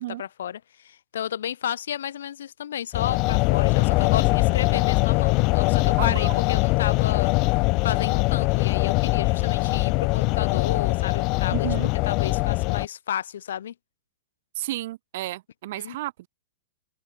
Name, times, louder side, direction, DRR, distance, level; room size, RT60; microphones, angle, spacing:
voice 1, 0.0-7.3 7.8-11.7 12.0-13.7 15.8-16.0, left 10 dB, 65° left, 7.7 m, -32 dB
sound 1, 2.9-12.9, left 26 dB, 40° left, 0.6 m, -22 dB
voice 2, 6.0-6.4 11.5-11.9 14.6-16.3, right 16 dB, 55° right, 3.7 m, -32 dB
open air
figure-of-eight pair, 100°, 0 cm